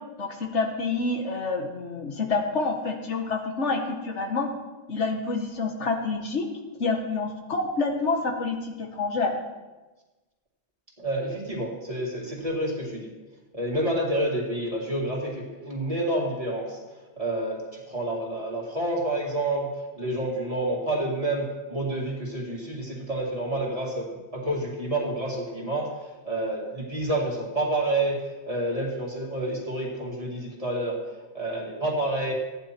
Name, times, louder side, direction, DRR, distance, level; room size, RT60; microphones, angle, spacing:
voice 1, 0.2-4.5 4.9-6.5 6.8-9.3, left 3 dB, 90° left, 3 dB, 1.7 m, -28 dB
voice 2, 11.0-13.1 13.5-16.8 17.2-31.0 31.3-32.3, right 1 dB, 30° right, -2 dB, 2.2 m, -29 dB
14.0 x 9.7 x 4.5 m, 1.2 s
omnidirectional pair, 1.2 m